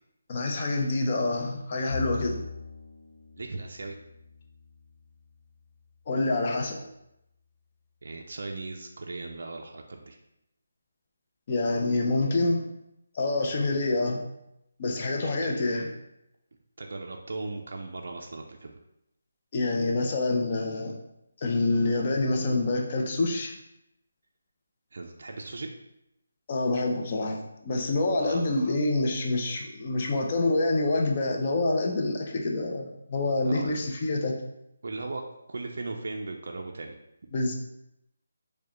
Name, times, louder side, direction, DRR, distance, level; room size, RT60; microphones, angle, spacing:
voice 1, 0.3-2.4 6.1-6.8 11.5-12.6 13.1-14.2 14.8-15.9 19.5-20.9 21.4-23.5 26.5-34.4 37.3-37.5, left 2 dB, 30° left, 1 dB, 0.4 m, -27 dB
Bowed string instrument, 1.9-5.4, left 5 dB, 90° left, 0.7 m, -41 dB
voice 2, 3.4-4.0 8.0-10.2 15.2-15.5 16.8-18.8 24.9-25.7 28.2-28.5 33.4-33.9 34.8-35.2 35.5-37.0, right 3 dB, 60° right, 2 dB, 0.3 m, -37 dB
4.7 x 2.2 x 2.9 m, 0.83 s
hypercardioid pair, 170°, 0 cm